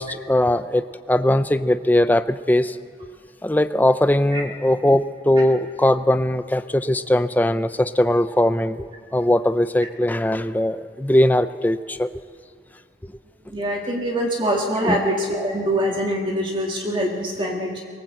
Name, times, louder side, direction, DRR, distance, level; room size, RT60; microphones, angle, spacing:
voice 1, 0.0-2.8 3.4-8.9 9.1-12.1 14.8-15.0, left 1 dB, 10° left, 12 dB, 0.4 m, -20 dB
voice 2, 13.5-17.8, equal, 30° right, 0 dB, 1.9 m, -24 dB
24.0 x 18.0 x 7.8 m, 2.2 s
head